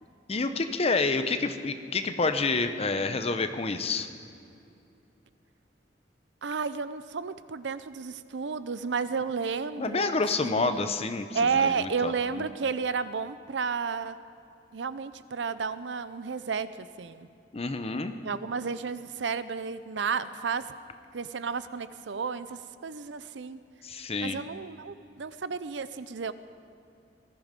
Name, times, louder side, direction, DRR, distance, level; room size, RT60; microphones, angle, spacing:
voice 1, 0.3-4.1 9.8-12.5 17.5-18.2 23.8-24.4, left 3 dB, 35° left, 8 dB, 0.8 m, -28 dB
voice 2, 6.4-10.1 10.4-10.9 11.3-14.2 14.7-17.3 18.2-20.7 21.1-23.6 24.2-26.3, right 5 dB, 75° right, 14 dB, 0.6 m, -32 dB
19.5 x 14.0 x 5.3 m, 2.6 s
head